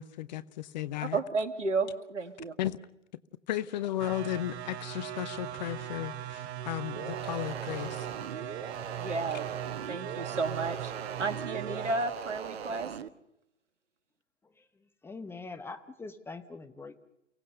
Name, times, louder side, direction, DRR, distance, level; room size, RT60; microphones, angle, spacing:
voice 1, 0.0-1.2 2.6-2.8 3.5-8.1, left 13 dB, 35° left, 15 dB, 0.8 m, -35 dB
voice 2, 1.0-2.5 9.0-9.4 9.9-10.9 11.2-12.9, right 3 dB, 70° right, 10 dB, 1.9 m, -32 dB
sound 1, 4.0-11.9, right 10 dB, 30° right, 1.4 m, -39 dB
sound 2, 7.0-13.1, right 7 dB, 55° right, 1.1 m, -41 dB
voice 3, 14.4-16.9, left 3 dB, 5° left, 7 dB, 1.0 m, -44 dB
30.0 x 17.5 x 6.6 m, 0.84 s
figure-of-eight pair, 110°, 37 cm